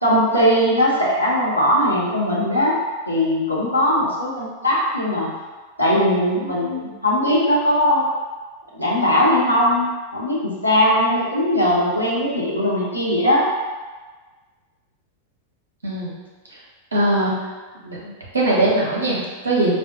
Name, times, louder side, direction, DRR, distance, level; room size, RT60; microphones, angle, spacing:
voice 1, 0.0-2.8 3.1-5.3 5.8-8.1 8.7-13.5, equal, 90° left, -6 dB, 0.8 m, -19 dB
voice 2, 15.8-16.2 16.9-17.3 17.8-19.7, right 2 dB, 75° right, -5 dB, 0.9 m, -21 dB
4.4 x 2.0 x 2.9 m, 1.3 s
figure-of-eight pair, 90°, 0 cm